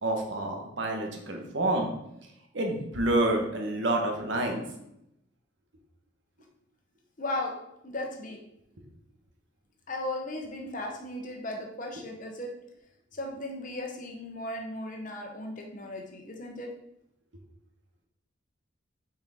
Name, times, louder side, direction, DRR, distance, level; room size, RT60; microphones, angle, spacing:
voice 1, 0.0-1.9 2.5-4.6, right 1 dB, 60° right, 2 dB, 1.2 m, -28 dB
voice 2, 7.2-7.5 7.8-8.4 9.9-12.5 13.1-16.7, left 1 dB, 40° left, 2 dB, 1.0 m, -36 dB
6.4 x 4.5 x 3.7 m, 0.81 s
head